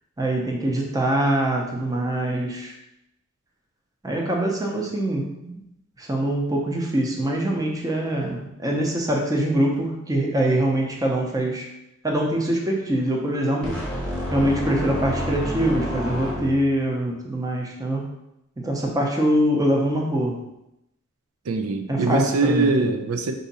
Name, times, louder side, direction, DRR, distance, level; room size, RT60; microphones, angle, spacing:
voice 1, 0.2-2.7 4.0-5.6 6.0-11.7 12.0-13.8 14.3-18.1 18.6-20.4 21.9-22.9, right 1 dB, 15° right, 0 dB, 0.6 m, -24 dB
sound 1, 13.6-16.8, equal, 5° left, 1.0 m, -29 dB
voice 2, 21.5-23.3, right 3 dB, 80° right, 6 dB, 0.5 m, -22 dB
4.8 x 2.7 x 4.1 m, 0.85 s
head